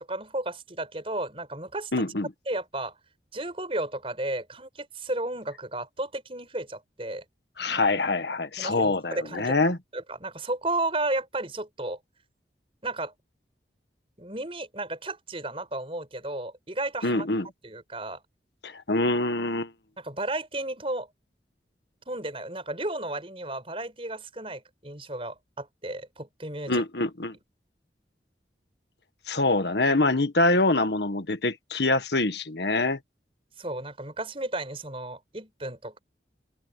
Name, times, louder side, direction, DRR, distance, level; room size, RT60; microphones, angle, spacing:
voice 1, 0.1-1.9 2.5-3.0 3.3-7.2 8.6-9.6 9.9-12.0 12.8-13.1 14.2-17.3 17.6-18.2 20.0-21.1 22.1-26.8 33.6-36.0, right 2 dB, 30° right, 6.5 m, -33 dB
voice 2, 1.9-2.3 7.6-9.8 17.0-17.5 18.6-19.7 26.7-27.4 29.3-33.0, left 2 dB, 75° left, 1.6 m, -25 dB
open air
head